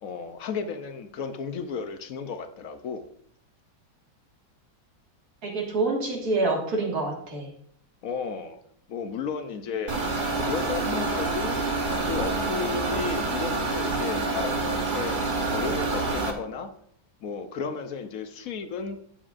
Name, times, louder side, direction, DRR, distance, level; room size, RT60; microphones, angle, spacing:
voice 1, 0.0-3.1 8.0-8.6 8.9-11.6 12.1-15.2 15.4-16.7 17.2-19.0, left 5 dB, 70° left, 9 dB, 0.8 m, -33 dB
voice 2, 5.4-7.5, right 3 dB, 50° right, 0 dB, 2.2 m, -27 dB
sound 1, 9.9-16.3, right 3 dB, 35° right, 0.8 m, -27 dB
12.0 x 8.7 x 2.5 m, 0.66 s
omnidirectional pair, 2.1 m